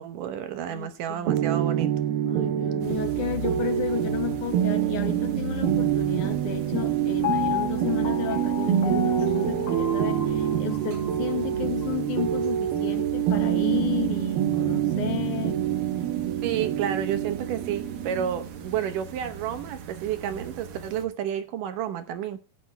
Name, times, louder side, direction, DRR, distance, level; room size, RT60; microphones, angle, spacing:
voice 1, 0.0-1.9 16.4-22.4, right 9 dB, 70° right, 10 dB, 2.3 m, -30 dB
voice 2, 0.7-1.4 2.2-15.6, left 9 dB, 65° left, 8 dB, 2.5 m, -33 dB
sound 1, 1.3-20.8, right 10 dB, 90° right, 2.9 m, -26 dB
sound 2, 2.8-21.0, right 3 dB, 50° right, 1.9 m, -40 dB
Piano, 7.2-11.3 11.8-11.9, left 12 dB, 80° left, 1.0 m, -33 dB
16.0 x 10.5 x 3.3 m, 0.29 s
omnidirectional pair, 4.2 m